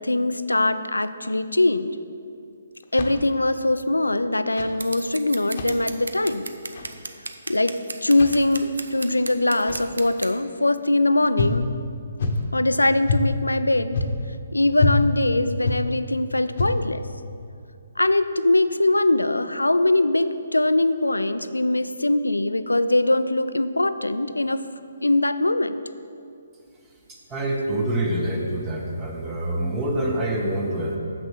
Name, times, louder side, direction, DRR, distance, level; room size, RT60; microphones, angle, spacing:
voice 1, 0.0-1.9 2.9-6.5 7.5-11.7 12.5-14.1 14.5-17.0 18.0-24.6 25.0-25.8, left 2 dB, 90° left, 13 dB, 0.4 m, -22 dB
sound 1, 2.8-3.5 4.4-4.8 5.4-5.8 6.6-7.0 8.1-8.5 9.6-10.0 11.4-11.6 12.2-12.5 13.1-13.3 13.9-14.3 14.8-15.0 15.6-15.9 16.5-16.9, left 3 dB, 50° left, 0.9 m, -26 dB
Scissors, 4.8-10.3, right 3 dB, 75° right, 0.6 m, -35 dB
voice 2, 27.3-31.0, right 1 dB, 15° right, -1 dB, 1.2 m, -26 dB
7.1 x 6.0 x 6.4 m, 2.5 s
figure-of-eight pair, 140°, 0 cm